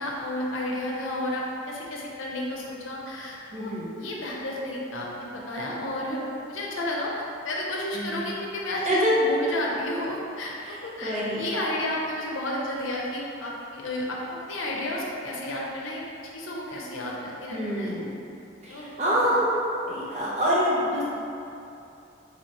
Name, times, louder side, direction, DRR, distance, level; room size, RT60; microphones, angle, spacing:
voice 1, 0.0-6.2 6.5-16.0 16.3-17.9 18.7-19.3, left 1 dB, 85° left, -3 dB, 0.6 m, -32 dB
voice 2, 3.5-3.9 7.9-8.2 8.9-9.2 11.0-11.5 17.5-18.1 18.6-19.5 19.9-21.0, equal, 35° right, -7 dB, 0.7 m, -26 dB
4.2 x 2.9 x 2.9 m, 2.7 s
head